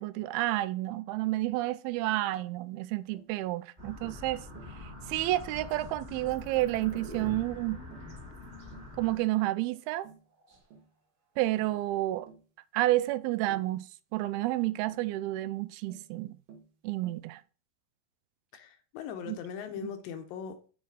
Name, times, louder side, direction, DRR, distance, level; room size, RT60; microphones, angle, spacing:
voice 1, 0.0-4.5 4.8-7.8 9.0-10.1 11.4-12.3 12.7-16.4 16.8-17.4 19.3-19.4 19.8-19.9, right 17 dB, 90° right, 2.5 m, -30 dB
Tap, 2.3-2.5 3.1-3.3 4.0-4.3 4.6-4.8 5.2-5.4 5.8-6.0 6.6-6.8 7.2-7.5 7.9-8.2 8.7-9.0 9.4-9.6 10.0-10.3 10.7-10.9 11.6-11.8 12.3-12.5 13.5-13.8 14.9-15.1 15.9-16.1 16.5-16.7 17.0-17.3, right 6 dB, 70° right, 2.9 m, -52 dB
sound 1, 3.8-9.2, left 2 dB, 20° right, 1.3 m, -45 dB
sound 2, 6.6-7.9 9.7-10.8 11.6-12.0, right 2 dB, 40° right, 1.4 m, -47 dB
voice 2, 18.5-20.7, left 7 dB, 75° left, 2.5 m, -40 dB
8.1 x 4.6 x 4.8 m
omnidirectional pair, 4.3 m